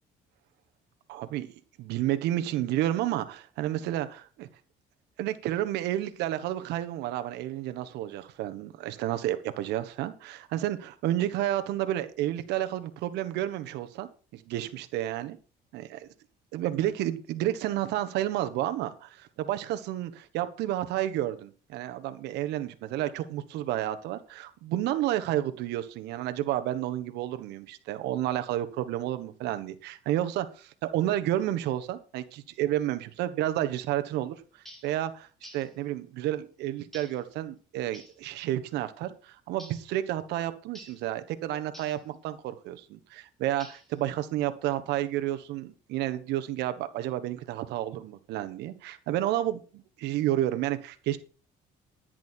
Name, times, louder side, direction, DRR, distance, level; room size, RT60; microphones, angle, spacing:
voice 1, 1.1-1.5 1.8-4.5 5.2-15.4 15.7-16.1 16.5-34.3 34.8-35.3 35.5-51.2, right 13 dB, 85° right, 10 dB, 1.4 m, -31 dB
sound 1, 34.6-34.9 35.4-35.7 36.9-37.2 37.9-38.2 39.6-39.9 40.7-41.0 41.7-42.0 43.6-44.0, right 1 dB, ahead, 5.4 m, -49 dB
10.5 x 10.5 x 4.5 m, 0.37 s
cardioid pair, 110°, 17 cm